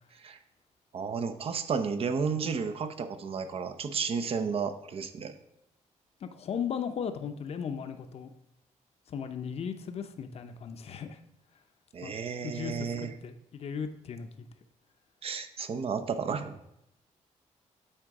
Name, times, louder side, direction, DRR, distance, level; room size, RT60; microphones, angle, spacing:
voice 1, 0.9-5.3 11.9-13.1 15.2-16.6, right 5 dB, 50° right, 10 dB, 0.7 m, -32 dB
voice 2, 6.2-8.3 9.1-11.2 12.0-12.1 12.4-14.5, left 7 dB, 55° left, 8 dB, 0.7 m, -37 dB
9.0 x 3.7 x 4.8 m, 0.83 s
cardioid pair, 115°, 13 cm